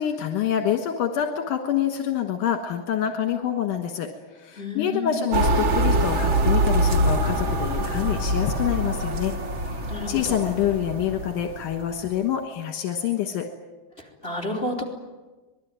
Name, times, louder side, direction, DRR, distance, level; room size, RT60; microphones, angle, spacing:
voice 1, 0.0-13.5, left 9 dB, 75° left, 5 dB, 2.9 m, -27 dB
voice 2, 4.6-5.2 9.9-10.4 14.0-14.8, left 2 dB, 20° left, -1 dB, 3.2 m, -31 dB
sound 1, 5.3-11.8, right 1 dB, 60° right, 0.7 m, -24 dB
26.0 x 21.0 x 9.4 m, 1.2 s
omnidirectional pair, 3.8 m